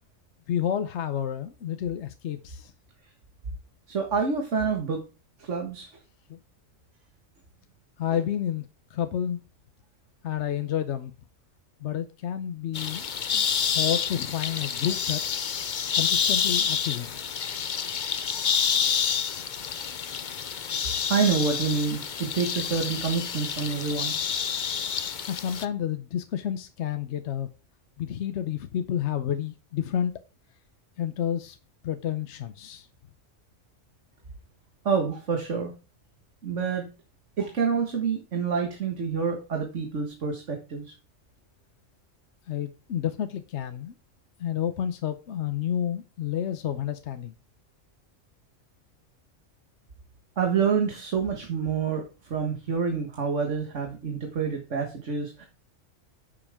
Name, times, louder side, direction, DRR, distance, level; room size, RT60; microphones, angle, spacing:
voice 1, 0.5-2.7 6.3-6.4 8.0-8.7 8.9-9.4 10.2-11.1 11.8-13.1 13.3-15.4 16.0-17.1 25.3-27.5 28.0-30.1 31.0-31.6 31.8-32.9 42.5-43.9 44.4-47.3, left 10 dB, 65° left, 10 dB, 1.0 m, -30 dB
voice 2, 3.9-5.0 5.4-6.0 21.1-24.1 34.8-35.7 36.4-36.9 37.4-40.9 50.4-55.5, right 5 dB, 65° right, 3 dB, 1.9 m, -27 dB
sound 1, 12.7-25.7, left 7 dB, 45° left, 0.7 m, -28 dB
10.0 x 7.4 x 3.5 m, 0.31 s
omnidirectional pair, 1.3 m